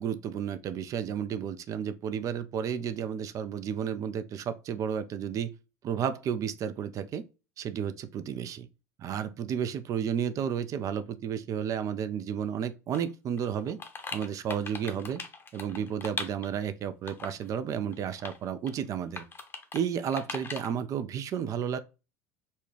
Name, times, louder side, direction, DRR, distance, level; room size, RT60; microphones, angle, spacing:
voice 1, 0.0-5.5 5.8-7.2 7.6-8.7 9.0-13.8 14.1-15.2 15.5-19.3 19.7-21.8, right 8 dB, 40° right, 0.5 m, -32 dB
sound 1, 12.9-13.0 13.4-16.6 17.1-17.5 17.9-18.4 18.7-18.8 19.2-19.8 20.1-20.7, left 4 dB, 25° left, 0.8 m, -39 dB
4.1 x 2.3 x 3.1 m
hypercardioid pair, 75°, 8 cm